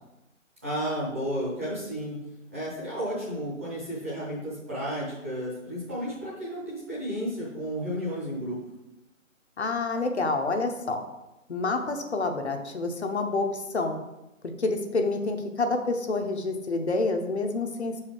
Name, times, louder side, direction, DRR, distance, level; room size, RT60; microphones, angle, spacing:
voice 1, 0.6-2.2 2.5-8.6, equal, 10° right, -8 dB, 0.8 m, -32 dB
voice 2, 9.6-11.0 11.5-14.0 14.6-18.0, left 3 dB, 55° left, 5 dB, 0.8 m, -28 dB
5.1 x 4.8 x 4.6 m, 0.97 s
figure-of-eight pair, 155°, 40 cm